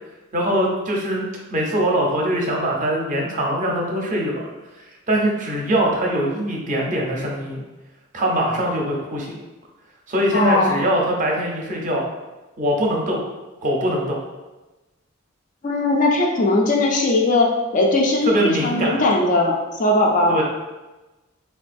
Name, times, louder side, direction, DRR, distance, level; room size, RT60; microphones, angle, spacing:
voice 1, 0.3-1.3 1.5-4.5 5.1-7.6 8.1-9.3 10.1-12.0 12.6-13.2 13.6-14.2 18.3-19.0 20.3-20.4, right 1 dB, 35° right, -1 dB, 0.6 m, -22 dB
voice 2, 10.3-10.9 15.6-20.4, left 2 dB, 35° left, 0 dB, 0.4 m, -19 dB
3.7 x 2.3 x 2.5 m, 1.1 s
head